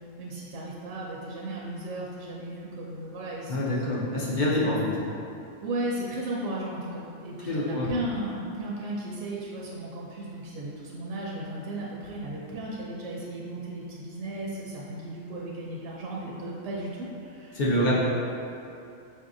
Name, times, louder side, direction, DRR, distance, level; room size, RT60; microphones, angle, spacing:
voice 1, 0.2-3.8 4.5-4.6 5.6-17.9, right 1 dB, 70° right, -5 dB, 0.9 m, -35 dB
voice 2, 3.5-4.9 7.5-8.0 17.5-17.9, left 1 dB, 50° left, -6 dB, 0.6 m, -26 dB
5.4 x 2.7 x 2.5 m, 2.6 s
omnidirectional pair, 1.4 m